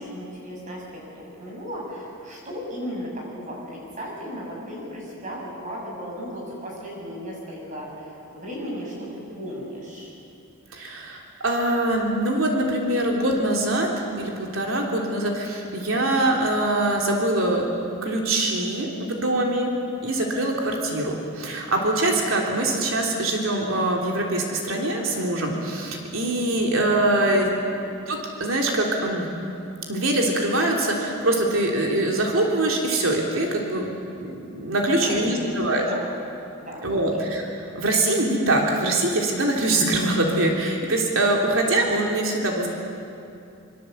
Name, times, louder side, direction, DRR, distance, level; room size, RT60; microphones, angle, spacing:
voice 1, 0.0-10.1 27.2-27.7 35.0-36.0 36.6-36.8, equal, 35° right, -2 dB, 7.8 m, -36 dB
voice 2, 10.7-13.9 14.1-17.6 18.0-19.7 20.0-27.5 28.1-29.3 29.9-33.9 34.2-35.8 36.8-42.7, right 1 dB, 65° right, 0 dB, 3.4 m, -23 dB
26.5 x 24.0 x 8.0 m, 2.6 s
head